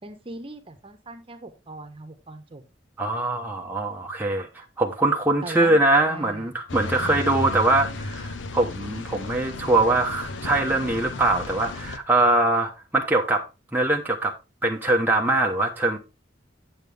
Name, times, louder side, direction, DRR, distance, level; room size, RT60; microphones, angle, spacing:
voice 1, 0.0-2.6 5.4-5.8 6.1-6.5 7.0-7.3, right 2 dB, 30° right, 1.2 m, -40 dB
voice 2, 3.0-13.4 13.7-14.3 14.6-16.0, right 2 dB, 10° right, 1.1 m, -22 dB
sound 1, 6.7-12.0, left 2 dB, 85° left, 1.0 m, -34 dB
9.0 x 7.5 x 3.4 m
head